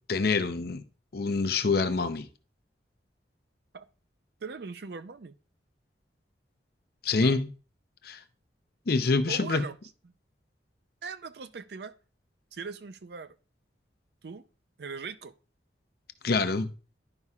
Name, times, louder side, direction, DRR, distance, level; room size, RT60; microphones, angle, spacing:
voice 1, 0.1-0.8 1.1-2.3 7.0-7.5 8.0-8.2 8.9-9.6 16.2-16.7, left 4 dB, 55° left, 0.6 m, -26 dB
voice 2, 4.4-5.3 7.2-7.4 9.3-9.8 11.0-11.9 12.5-13.4 14.2-14.4 14.8-15.3, right 5 dB, 60° right, 0.5 m, -39 dB
11.0 x 5.5 x 2.4 m
head